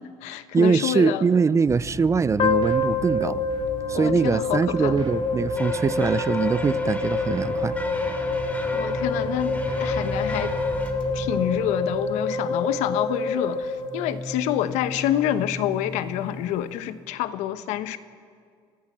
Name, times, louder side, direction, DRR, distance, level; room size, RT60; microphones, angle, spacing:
voice 1, 0.0-1.2 3.9-5.0 8.7-10.6 11.1-18.0, left 12 dB, 80° left, 12 dB, 1.0 m, -27 dB
voice 2, 0.5-3.5 3.9-7.7, right 5 dB, 25° right, 18 dB, 0.5 m, -22 dB
sound 1, 1.7-16.5, equal, 45° right, 3.6 m, -37 dB
sound 2, 2.4-14.6, left 3 dB, 45° left, 1.9 m, -27 dB
sound 3, 5.6-10.9, left 1 dB, 10° left, 3.5 m, -37 dB
24.0 x 15.0 x 7.5 m, 2.1 s
supercardioid pair, 95°, 12 cm